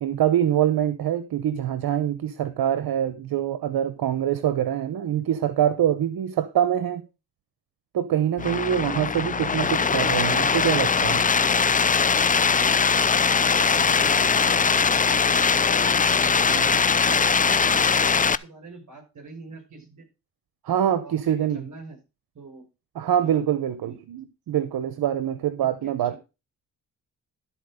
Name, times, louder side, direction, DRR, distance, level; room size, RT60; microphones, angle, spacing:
voice 1, 0.0-7.0 7.9-11.2 16.5-16.8 20.6-21.7 23.0-26.2, right 10 dB, 75° right, 1.0 m, -24 dB
sound 1, 8.4-18.4, left 5 dB, 25° left, 0.5 m, -21 dB
voice 2, 13.7-14.6 16.0-16.7 17.0-20.1 20.9-22.0 22.3-22.7 23.2-24.0 25.6-26.2, right 3 dB, 50° right, 6.1 m, -45 dB
13.0 x 4.4 x 6.5 m
cardioid pair, 70°, 37 cm